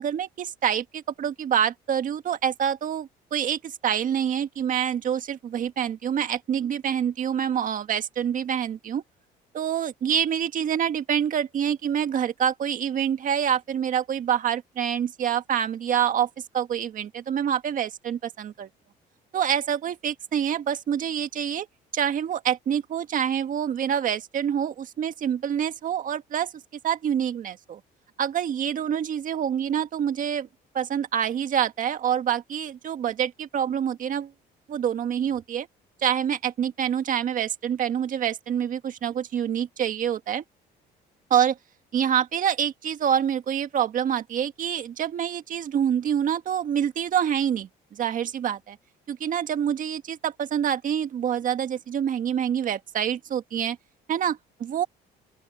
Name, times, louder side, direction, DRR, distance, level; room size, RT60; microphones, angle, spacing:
voice 1, 0.0-9.0 9.5-16.3 16.5-18.7 19.3-21.7 21.9-26.5 26.8-27.8 28.2-30.5 30.7-34.3 34.7-35.7 36.0-40.4 41.3-41.6 41.9-48.8 49.1-53.8 54.1-54.9, right 9 dB, 50° right, 1.6 m, -26 dB
open air
cardioid pair, 110°, 17 cm